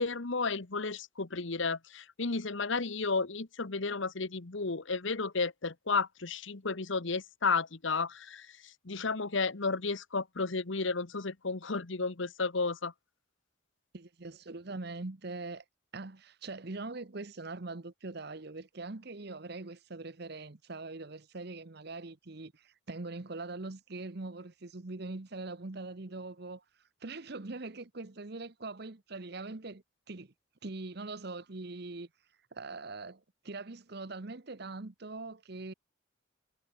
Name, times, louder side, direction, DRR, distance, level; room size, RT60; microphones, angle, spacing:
voice 1, 0.0-8.5 8.8-12.9, left 4 dB, 70° left, 1.2 m, -32 dB
voice 2, 13.9-15.6 15.9-26.6 27.0-30.3 30.6-32.1 32.5-35.7, right 3 dB, 55° right, 1.0 m, -42 dB
head